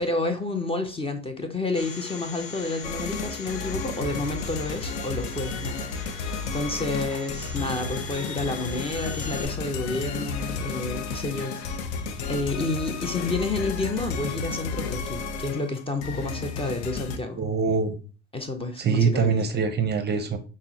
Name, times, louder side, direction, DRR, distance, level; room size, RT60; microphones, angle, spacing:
voice 1, 0.0-11.9 12.3-17.4 18.3-19.3, left 2 dB, 15° left, 0.6 m, -30 dB
Domestic sounds home sounds, 1.7-9.4, left 4 dB, 60° left, 1.2 m, -41 dB
sound 1, 2.8-17.2, left 4 dB, 75° left, 0.6 m, -32 dB
voice 2, 17.4-18.0 18.8-20.4, right 5 dB, 30° right, 0.6 m, -23 dB
5.6 x 2.1 x 2.8 m
hypercardioid pair, 80°, 33 cm